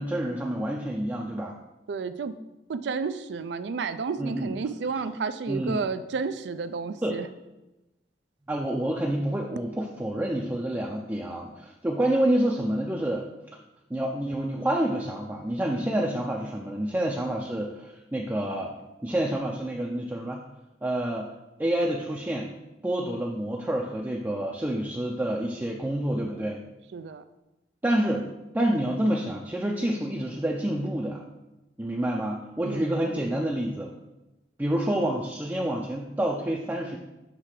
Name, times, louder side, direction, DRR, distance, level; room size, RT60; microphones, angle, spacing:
voice 1, 0.0-1.5 4.2-4.5 5.5-5.8 7.0-7.2 8.5-13.3 13.9-18.7 19.0-20.4 20.8-21.3 21.6-22.5 22.8-26.6 27.8-28.2 28.5-31.2 31.8-33.9 34.6-37.0, right 1 dB, 10° right, -1 dB, 0.5 m, -28 dB
voice 2, 1.9-2.4 2.7-7.3 26.9-27.2 32.6-33.0, right 5 dB, 70° right, 12 dB, 0.4 m, -31 dB
7.5 x 3.3 x 4.8 m, 0.99 s
head